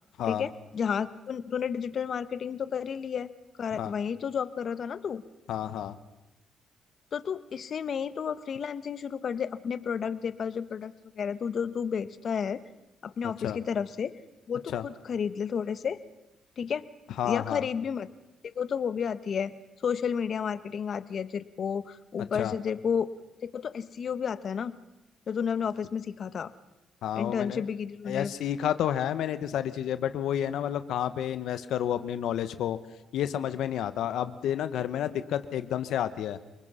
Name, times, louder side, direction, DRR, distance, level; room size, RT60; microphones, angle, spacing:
voice 1, 0.3-3.3 3.6-5.2 7.1-12.6 13.0-14.1 14.5-16.0 16.6-16.8 17.2-18.1 18.4-19.5 19.8-23.1 23.5-24.8 25.3-26.5 27.1-28.3, left 7 dB, 55° left, 13 dB, 1.2 m, -31 dB
voice 2, 5.5-5.9 13.4-13.6 14.7-14.8 17.2-17.7 22.3-22.5 27.0-27.6 28.1-32.8 33.1-36.4, left 10 dB, 80° left, 11 dB, 1.1 m, -30 dB
29.5 x 20.0 x 5.7 m, 0.96 s
cardioid pair, 90°, 0 cm